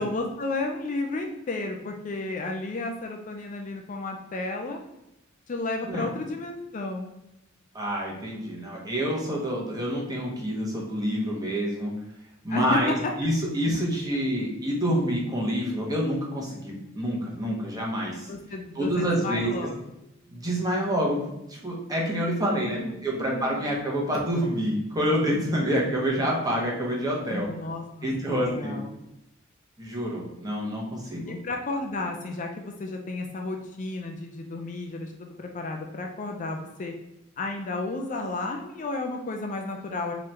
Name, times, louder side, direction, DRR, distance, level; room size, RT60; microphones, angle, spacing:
voice 1, 0.0-4.8 5.5-7.1 12.5-12.8 18.3-19.8 22.5-23.7 27.3-28.9 31.3-36.9 37.4-40.1, left 2 dB, 40° left, 3 dB, 0.4 m, -32 dB
voice 2, 7.7-11.9 12.4-18.3 18.7-19.5 20.3-27.5 28.0-28.8 29.8-31.3, equal, 20° right, -3 dB, 1.2 m, -27 dB
3.8 x 3.1 x 4.3 m, 0.88 s
head